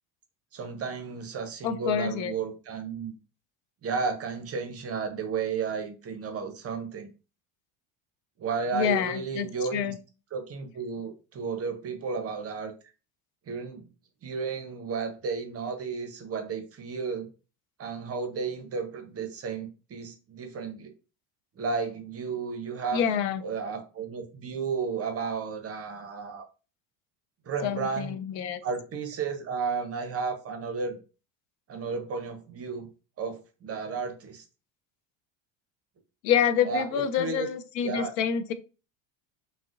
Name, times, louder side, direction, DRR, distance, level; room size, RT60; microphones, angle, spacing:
voice 1, 0.5-3.1 3.8-7.1 8.4-9.9 10.3-12.7 13.5-13.9 14.2-17.3 17.8-20.9 21.6-23.0 23.4-26.5 27.5-28.2 28.6-31.0 31.7-32.9 33.2-34.4 36.6-37.5 37.8-38.1, right 5 dB, 30° right, 7 dB, 0.6 m, -33 dB
voice 2, 1.6-2.3 8.7-10.0 22.9-23.4 27.6-28.6 36.2-38.5, left 8 dB, 85° left, 11 dB, 0.6 m, -27 dB
3.5 x 2.1 x 2.4 m, 0.33 s
supercardioid pair, 100°, 50 cm